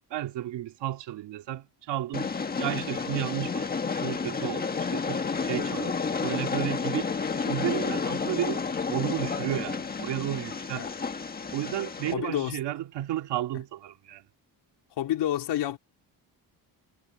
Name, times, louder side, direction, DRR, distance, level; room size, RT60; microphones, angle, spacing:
voice 1, 0.1-2.3 2.6-7.1 7.4-10.9 11.5-14.3, right 13 dB, 85° right, 2.2 m, -33 dB
Train, 2.1-12.1, left 5 dB, 20° left, 1.4 m, -31 dB
voice 2, 12.1-12.6 15.0-15.8, left 12 dB, 80° left, 4.0 m, -29 dB
cardioid pair, 165°, 41 cm